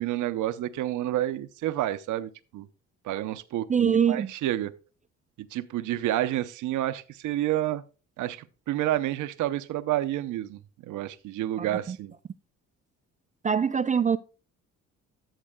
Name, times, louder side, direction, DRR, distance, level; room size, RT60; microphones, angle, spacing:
voice 1, 0.0-2.7 3.0-4.7 5.4-7.8 8.2-12.1, right 13 dB, 80° right, 0.7 m, -29 dB
voice 2, 3.7-4.3 11.6-12.0 13.4-14.2, right 7 dB, 25° right, 0.3 m, -24 dB
13.5 x 7.4 x 2.2 m
cardioid pair, 90°, 30 cm